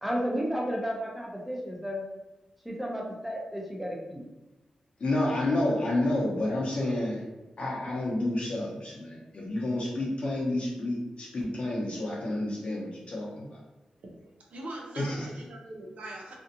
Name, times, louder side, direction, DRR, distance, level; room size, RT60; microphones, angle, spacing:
voice 1, 0.0-2.0 2.6-4.2, equal, 5° right, -2 dB, 0.7 m, -32 dB
voice 2, 5.0-7.2 7.6-13.5 15.0-15.3, left 1 dB, 55° left, -4 dB, 0.8 m, -29 dB
voice 3, 14.5-16.3, right 1 dB, 75° right, 0 dB, 0.6 m, -42 dB
2.6 x 2.4 x 2.7 m, 1.1 s
cardioid pair, 70°, 2 cm